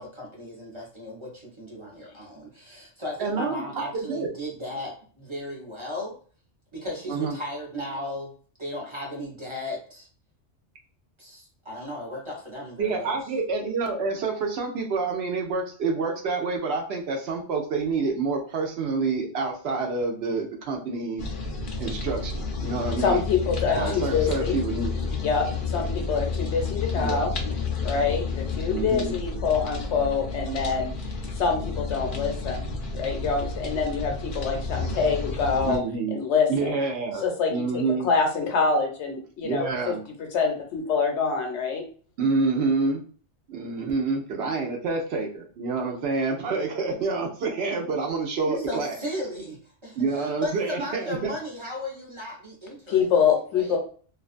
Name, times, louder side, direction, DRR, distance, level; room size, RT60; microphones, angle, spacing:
voice 1, 0.0-6.2 6.7-8.3 8.6-10.1 11.2-13.1 23.7-24.2 48.4-53.1 53.5-53.8, left 1 dB, 30° right, -3 dB, 0.7 m, -35 dB
voice 2, 3.2-4.3 7.1-7.4 12.8-21.3 21.8-23.2 23.8-24.9 27.0-27.2 28.7-29.2 35.6-36.2 36.5-37.2 37.5-38.1 39.4-40.0 42.2-43.1 43.5-49.0 50.0-51.3, right 4 dB, 70° right, 2 dB, 0.8 m, -28 dB
sound 1, 21.2-35.8, left 4 dB, 60° left, 0.6 m, -31 dB
voice 3, 23.0-24.6 25.2-27.3 27.8-30.9 31.4-32.7 32.9-35.8 36.1-36.8 37.2-39.9 40.3-41.8 52.9-53.8, left 5 dB, 75° left, 2 dB, 0.9 m, -25 dB
2.5 x 2.3 x 2.4 m, 0.42 s
omnidirectional pair, 1.2 m